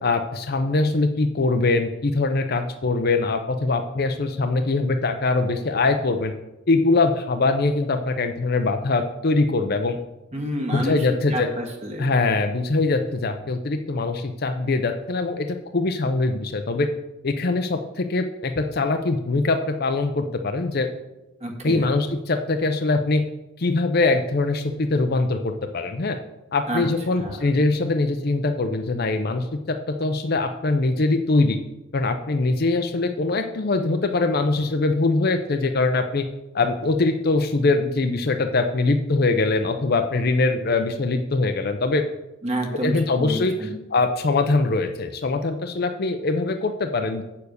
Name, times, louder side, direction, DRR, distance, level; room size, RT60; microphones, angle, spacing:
voice 1, 0.0-6.3 6.7-10.0 10.7-11.5 12.0-16.9 17.2-20.9 21.6-23.2 23.6-26.2 26.5-31.6 31.9-36.2 36.5-42.0 42.8-47.2, left 3 dB, 50° left, 6 dB, 0.6 m, -22 dB
voice 2, 10.3-12.1 21.4-21.9 26.7-26.8 27.2-27.4 42.4-43.7, equal, 30° right, 2 dB, 1.6 m, -29 dB
8.3 x 6.9 x 6.6 m, 0.97 s
head